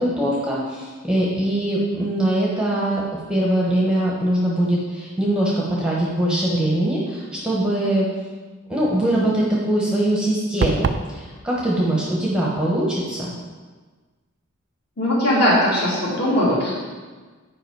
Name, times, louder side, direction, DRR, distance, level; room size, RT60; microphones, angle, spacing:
voice 1, 0.0-8.1 8.7-13.3, right 1 dB, 5° right, -5 dB, 0.9 m, -22 dB
sound 1, 10.6-11.1, right 5 dB, 50° right, 0.3 m, -22 dB
voice 2, 15.0-16.7, equal, 45° left, -6 dB, 2.2 m, -19 dB
7.8 x 4.9 x 4.6 m, 1.4 s
head